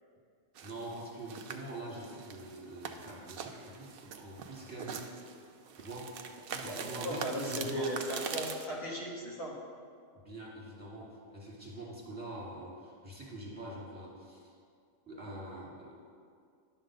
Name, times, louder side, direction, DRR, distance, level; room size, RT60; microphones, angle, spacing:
voice 1, 0.6-5.1 5.7-6.2 6.6-8.0 10.1-14.4 15.1-16.0, right 1 dB, 5° right, -6 dB, 2.3 m, -44 dB
sound 1, 0.6-8.7, right 6 dB, 60° right, 0.6 m, -43 dB
voice 2, 6.5-9.6, equal, 80° left, -4 dB, 1.9 m, -37 dB
11.0 x 3.9 x 6.3 m, 2.2 s
omnidirectional pair, 1.4 m